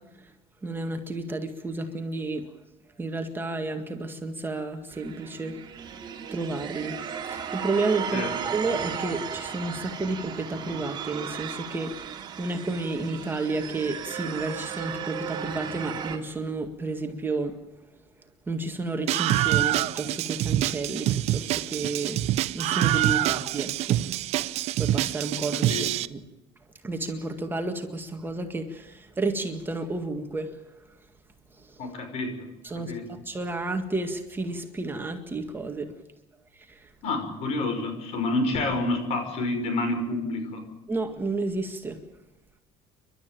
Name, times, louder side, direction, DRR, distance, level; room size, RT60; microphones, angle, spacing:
voice 1, 0.6-2.5 3.0-5.6 6.3-7.0 7.3-17.6 18.5-22.2 22.5-24.0 24.8-26.2 26.8-30.5 32.6-32.9 33.3-35.9 36.7-36.8 40.9-42.0, right 3 dB, 15° right, 5 dB, 1.9 m, -31 dB
sound 1, 4.9-16.2, right 8 dB, 35° right, 2.9 m, -35 dB
Screaming, 19.1-26.1, right 14 dB, 60° right, 0.7 m, -26 dB
voice 2, 25.5-25.8 31.8-32.5 32.7-33.1 37.0-40.6, left 2 dB, 60° left, 7 dB, 5.4 m, -29 dB
28.5 x 12.5 x 9.0 m, 1.0 s
cardioid pair, 125°, 12 cm